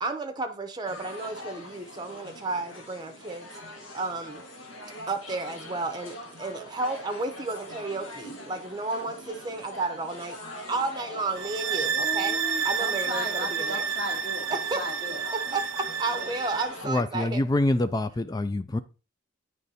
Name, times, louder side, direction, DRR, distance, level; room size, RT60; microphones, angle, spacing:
voice 1, 0.0-3.5 3.9-4.4 5.1-10.4 10.7-12.4 12.6-13.9 14.5-14.8 15.3-15.6 16.0-17.4, right 3 dB, 20° right, 0.7 m, -32 dB
sound 1, 0.8-16.9, left 1 dB, 75° left, 1.5 m, -43 dB
sound 2, 11.4-16.7, right 7 dB, 75° right, 0.5 m, -30 dB
voice 2, 11.9-15.2, left 1 dB, 45° left, 2.1 m, -36 dB
voice 3, 16.8-18.8, left 2 dB, 20° left, 0.3 m, -26 dB
9.3 x 3.2 x 4.1 m
head